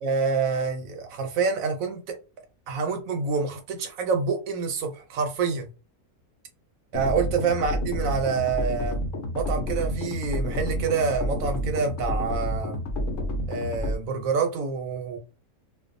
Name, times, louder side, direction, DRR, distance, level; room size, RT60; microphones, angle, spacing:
voice 1, 0.0-2.2 2.7-5.7 6.9-9.0 9.3-12.8 13.5-15.2, right 5 dB, 70° right, 0.9 m, -27 dB
sound 1, 6.9-13.9, equal, 65° left, 0.9 m, -29 dB
2.5 x 2.3 x 2.5 m
omnidirectional pair, 1.6 m